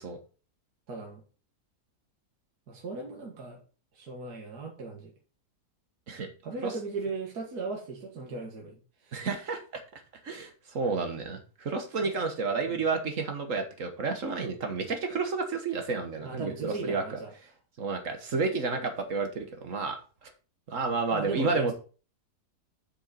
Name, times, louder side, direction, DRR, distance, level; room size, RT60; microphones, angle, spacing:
voice 1, 0.9-1.2 2.7-3.6 3.9-5.1 6.4-9.3 12.0-12.1 12.7-12.8 16.2-17.3 21.1-21.7, right 3 dB, 70° right, 0 dB, 2.1 m, -38 dB
voice 2, 9.1-9.6 10.2-17.2 17.8-20.3 20.7-21.7, right 4 dB, 55° right, 5 dB, 1.6 m, -31 dB
7.8 x 6.3 x 4.2 m, 0.36 s
omnidirectional pair, 1.7 m